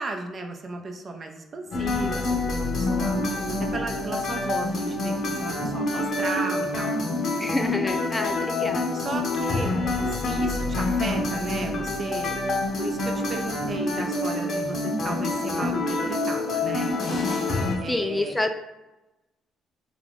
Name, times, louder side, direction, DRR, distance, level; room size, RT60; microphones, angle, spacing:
voice 1, 0.0-3.2 3.6-7.0 8.9-9.8 10.1-16.9 17.8-18.4, right 3 dB, 45° right, 3 dB, 0.5 m, -35 dB
sound 1, 1.7-17.8, left 2 dB, 60° left, 0.6 m, -27 dB
voice 2, 7.4-9.0 17.9-18.6, left 2 dB, 15° left, 6 dB, 0.3 m, -28 dB
2.5 x 2.3 x 3.4 m, 1.0 s
supercardioid pair, 65°, 0 cm